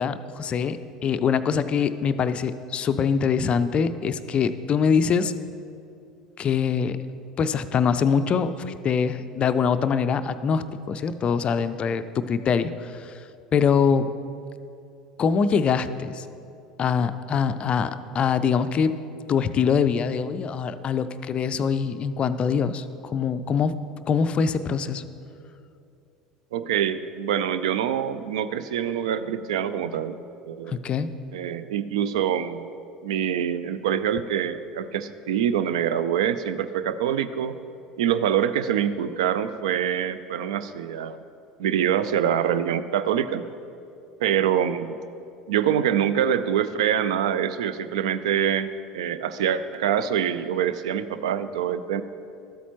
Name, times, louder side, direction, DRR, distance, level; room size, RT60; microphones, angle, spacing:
voice 1, 0.0-5.3 6.4-7.0 7.4-13.2 13.5-14.1 15.2-16.2 16.8-19.0 19.3-23.8 24.1-25.0 30.7-31.1, left 6 dB, 30° left, 12 dB, 0.4 m, -24 dB
voice 2, 26.5-30.8 31.3-32.6 33.0-37.5 38.0-41.2 41.6-43.4 44.2-44.9 45.5-52.0, right 9 dB, 65° right, 13 dB, 0.3 m, -25 dB
13.0 x 8.2 x 3.0 m, 2.6 s
figure-of-eight pair, 70°, 3 cm